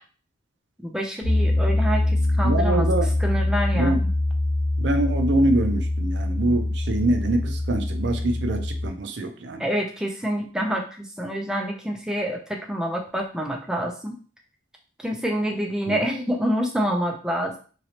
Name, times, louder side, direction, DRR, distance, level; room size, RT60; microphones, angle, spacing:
voice 1, 0.8-2.9 3.2-4.1 9.6-12.4 12.7-14.2 15.0-17.6, equal, 5° right, 1 dB, 0.4 m, -27 dB
Piano, 1.2-8.9, left 1 dB, 55° left, 1.1 m, -24 dB
voice 2, 2.4-3.1 3.8-4.0 4.8-9.6 15.9-16.0, right 2 dB, 60° right, 6 dB, 0.5 m, -24 dB
3.0 x 2.9 x 2.8 m, 0.39 s
head